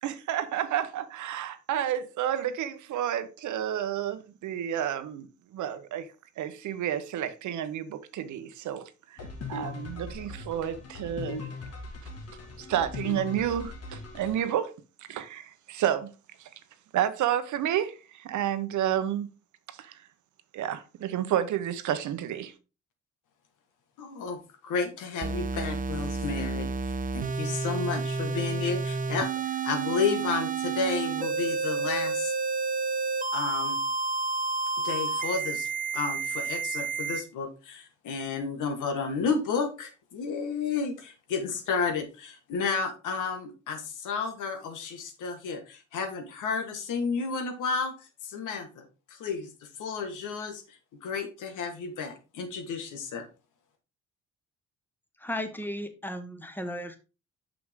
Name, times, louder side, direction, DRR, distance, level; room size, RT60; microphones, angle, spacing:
voice 1, 0.0-5.3 5.5-6.1 6.4-9.2 9.5-11.5 12.6-14.7 15.1-16.1 16.4-16.5 16.9-19.3 19.7-20.0 20.5-22.5, right 10 dB, 75° right, 0.9 m, -30 dB
sound 1, 9.2-14.4, left 3 dB, 55° left, 1.8 m, -39 dB
voice 2, 24.0-26.7 27.1-32.3 33.3-33.8 34.8-35.7 35.9-49.5 49.8-53.3, left 5 dB, 80° left, 1.5 m, -32 dB
sound 2, 25.2-37.2, right 4 dB, 25° right, 0.7 m, -30 dB
voice 3, 55.2-57.0, left 1 dB, 5° left, 1.2 m, -35 dB
6.2 x 6.0 x 3.6 m
cardioid pair, 90°, 30 cm